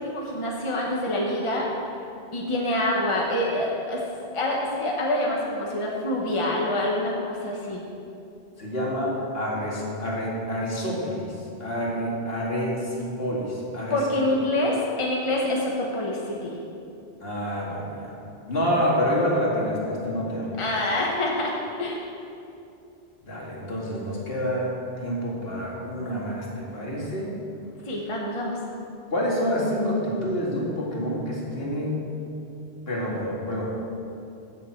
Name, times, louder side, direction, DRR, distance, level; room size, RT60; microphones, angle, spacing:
voice 1, 0.0-1.7 2.3-4.0 4.3-7.8 13.9-16.6 20.6-21.5 21.8-22.0 27.9-28.6, left 1 dB, 30° left, -2 dB, 1.1 m, -26 dB
voice 2, 8.6-11.3 11.6-14.0 17.2-18.1 18.5-20.6 23.2-27.3 29.1-32.0 32.9-33.7, equal, 65° left, -5 dB, 2.4 m, -28 dB
15.5 x 6.7 x 4.5 m, 2.7 s
omnidirectional pair, 1.1 m